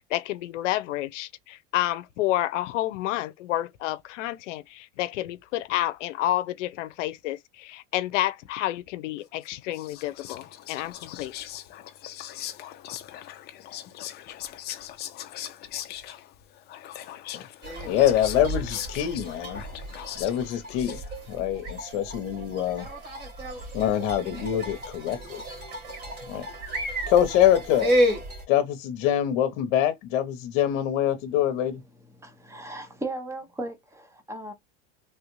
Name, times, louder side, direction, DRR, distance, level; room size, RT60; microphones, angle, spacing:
voice 1, 0.1-11.4, left 14 dB, 90° left, 0.6 m, -29 dB
Whispering, 9.4-21.4, left 12 dB, 30° left, 0.4 m, -40 dB
sound 1, 17.6-28.4, equal, 30° right, 1.9 m, -32 dB
voice 2, 17.9-19.6 20.2-21.0 21.3-22.9 23.7-25.4 26.3-26.5 27.1-28.0 28.5-31.8, left 11 dB, 55° left, 0.8 m, -24 dB
voice 3, 32.2-34.5, right 2 dB, 10° right, 0.7 m, -36 dB
3.3 x 2.4 x 3.0 m
supercardioid pair, 130°, 36 cm